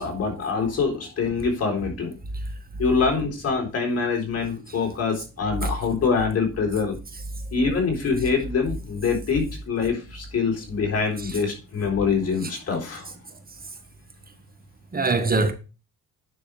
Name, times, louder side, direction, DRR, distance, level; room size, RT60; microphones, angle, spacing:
voice 1, 0.0-2.1 2.8-7.0 7.5-13.1, left 5 dB, 55° left, 4.0 m, -25 dB
voice 2, 14.9-15.5, right 3 dB, 30° right, 1.6 m, -24 dB
9.7 x 6.4 x 3.5 m
cardioid pair, 90°, 30 cm